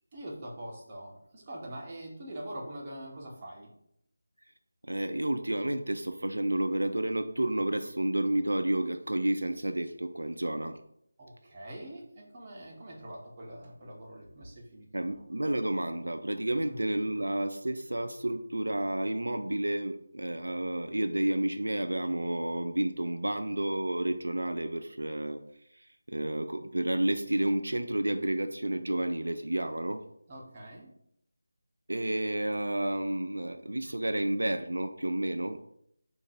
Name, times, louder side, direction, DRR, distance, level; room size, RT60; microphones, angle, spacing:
voice 1, 0.1-3.7 11.2-14.9 15.3-15.4 16.6-16.8 30.3-30.9, right 1 dB, 25° right, -3 dB, 1.1 m, -43 dB
voice 2, 4.8-10.8 14.9-25.4 25.7-30.0 31.9-35.8, right 1 dB, 85° right, 7 dB, 0.4 m, -31 dB
3.7 x 2.7 x 4.3 m, 0.74 s
figure-of-eight pair, 165°, 0 cm